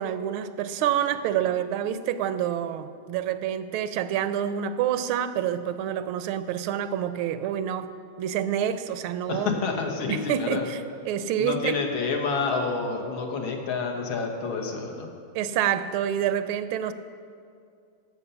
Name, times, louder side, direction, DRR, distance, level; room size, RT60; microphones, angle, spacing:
voice 1, 0.0-7.9 8.2-9.5 10.1-10.8 11.1-11.8 15.3-16.9, right 10 dB, 85° right, 12 dB, 1.4 m, -27 dB
voice 2, 9.3-10.7 11.4-15.1, left 4 dB, 75° left, 1 dB, 2.0 m, -28 dB
14.5 x 5.7 x 6.9 m, 2.3 s
omnidirectional pair, 2.3 m